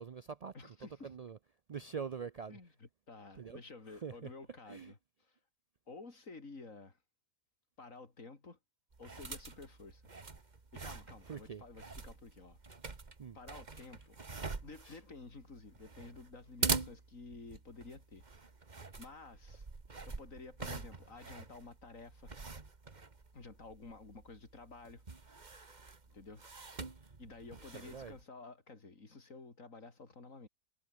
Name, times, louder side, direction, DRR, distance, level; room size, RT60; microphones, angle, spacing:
voice 1, 0.0-0.7 1.0-1.4 1.7-2.6 3.4-3.6 3.9-4.3 4.7-4.9 11.3-11.6 13.2-13.4 13.7-13.9 14.8-15.0 27.7-28.2, right 6 dB, 80° right, 0.3 m, -44 dB
voice 2, 0.5-1.1 2.5-5.0 5.9-7.0 7.8-8.6 9.0-10.0 10.7-12.6 13.3-14.2 14.6-18.2 19.0-19.7 20.1-22.4 23.3-25.1 26.1-26.5 27.2-30.5, left 3 dB, 75° left, 3.5 m, -52 dB
sound 1, 8.9-28.2, right 3 dB, 35° right, 1.7 m, -44 dB
omnidirectional pair, 1.4 m